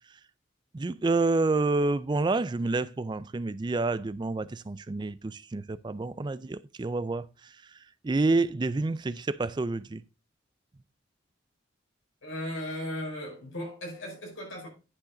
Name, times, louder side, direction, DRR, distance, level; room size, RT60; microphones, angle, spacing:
voice 1, 0.7-10.0, right 3 dB, 25° right, 0.3 m, -29 dB
voice 2, 12.2-14.7, left 1 dB, 90° left, 4.8 m, -36 dB
9.9 x 5.8 x 3.8 m
head